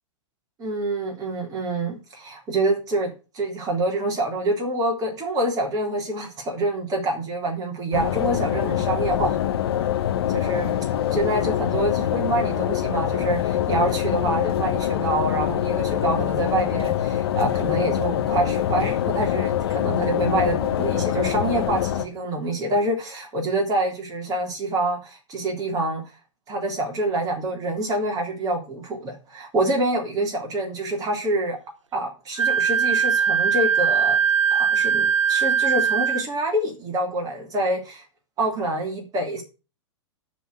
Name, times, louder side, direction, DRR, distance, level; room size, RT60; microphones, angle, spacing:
voice 1, 0.6-9.4 10.3-10.8 11.1-26.0 26.5-31.6 31.9-34.2 34.5-38.0 38.4-39.4, right 1 dB, 25° right, 2 dB, 3.6 m, -26 dB
sound 1, 7.9-22.1, left 11 dB, 50° left, 1.2 m, -24 dB
Wind instrument woodwind instrument, 32.4-36.2, right 7 dB, 80° right, 0.5 m, -20 dB
12.0 x 4.5 x 8.1 m, 0.34 s
figure-of-eight pair, 105°, 16 cm